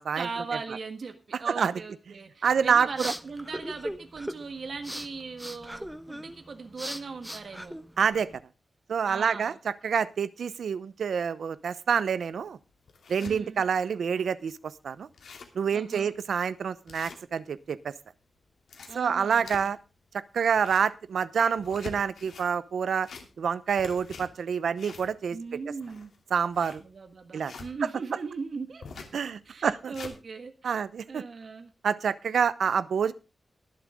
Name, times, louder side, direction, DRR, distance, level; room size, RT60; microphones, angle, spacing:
voice 1, 0.1-7.8 9.1-9.6 13.2-13.6 15.7-16.1 18.9-19.7 25.3-26.1 26.8-30.5 31.1-31.7, right 4 dB, 55° right, 6 dB, 1.6 m, -39 dB
voice 2, 2.4-3.1 8.0-8.3 8.9-12.6 13.1-14.5 14.8-15.1 15.5-17.9 18.9-19.8 20.3-23.1 23.4-25.4 26.3-26.8 27.3-27.5 29.1-29.9 30.6-31.2 31.8-33.1, right 6 dB, 90° right, 15 dB, 0.8 m, -27 dB
sound 1, 2.5-8.4, equal, 5° right, 0.7 m, -40 dB
sound 2, 12.6-13.4 13.9-14.0 14.3-14.4 14.8-14.9 15.0-15.6 16.1-16.2 16.9-17.7 18.4-19.9 20.4-21.0 21.5-22.5 22.9-23.5 23.8-27.7 28.8-29.2 29.6-30.2, left 5 dB, 90° left, 2.7 m, -45 dB
22.5 x 7.6 x 3.6 m, 0.29 s
wide cardioid pair, 150°, 0 cm